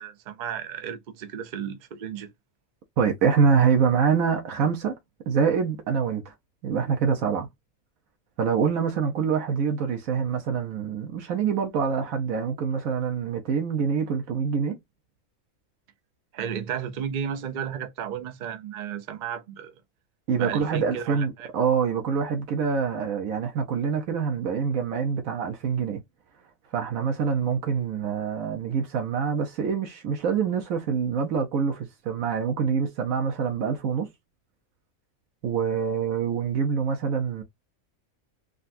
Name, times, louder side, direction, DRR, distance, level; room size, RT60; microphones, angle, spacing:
voice 1, 0.0-2.3 16.3-19.7 20.4-21.5, right 8 dB, 50° right, 0.5 m, -33 dB
voice 2, 3.0-4.9 5.3-6.3 6.6-7.5 8.4-14.8 20.3-26.0 26.7-34.1 35.4-37.4, right 6 dB, 80° right, 1.1 m, -25 dB
3.8 x 2.2 x 2.5 m
omnidirectional pair, 1.4 m